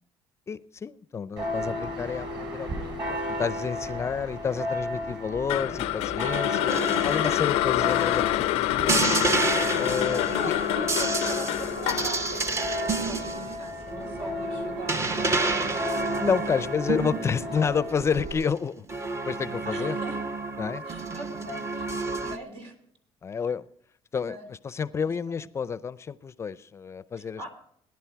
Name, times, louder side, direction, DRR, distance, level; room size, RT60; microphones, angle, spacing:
voice 1, 0.5-6.8 7.0-9.0 9.8-10.5 16.2-18.9 19.2-20.0 20.6-20.8 23.2-23.7 24.1-27.5, left 6 dB, 30° left, 16 dB, 0.5 m, -30 dB
Church bell, 1.4-18.3, left 1 dB, 50° right, 6.3 m, -34 dB
sound 1, 5.5-13.7, left 17 dB, 85° left, 0.4 m, -27 dB
sound 2, 6.7-8.4 8.9-17.7 18.0-18.4 18.9-22.4, right 3 dB, 30° right, 0.9 m, -30 dB
voice 2, 6.7-7.1 10.3-15.8 19.7-20.2 20.8-22.8 24.2-24.5 25.3-25.4 27.2-27.6, right 2 dB, 75° right, 5 dB, 3.4 m, -41 dB
19.0 x 10.5 x 4.6 m, 0.70 s
cardioid pair, 125°, 10 cm